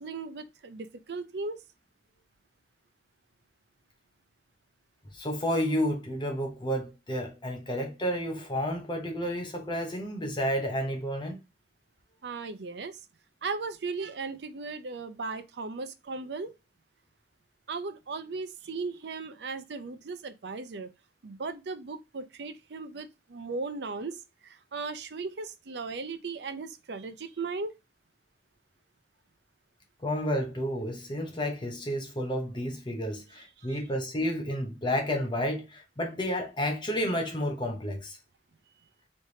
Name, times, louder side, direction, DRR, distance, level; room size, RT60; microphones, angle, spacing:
voice 1, 0.0-1.6 12.2-13.0 13.4-16.5 17.7-20.9 21.2-27.7 33.6-33.8, right 4 dB, 75° right, 0.6 m, -37 dB
voice 2, 5.1-11.4 30.0-38.2, equal, 25° left, 0.7 m, -31 dB
4.4 x 3.3 x 2.7 m
head